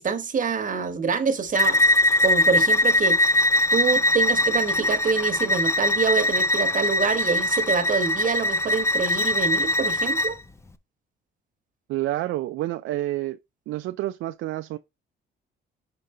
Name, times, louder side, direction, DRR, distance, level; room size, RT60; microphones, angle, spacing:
voice 1, 0.0-1.8 2.2-3.4 3.7-10.4, right 5 dB, 40° right, 1.2 m, -26 dB
Bowed string instrument, 1.5-10.3, left 1 dB, 15° left, 0.6 m, -21 dB
voice 2, 11.9-13.4 13.7-14.8, right 15 dB, 85° right, 0.4 m, -28 dB
5.2 x 4.8 x 4.2 m
cardioid pair, 90°, 20 cm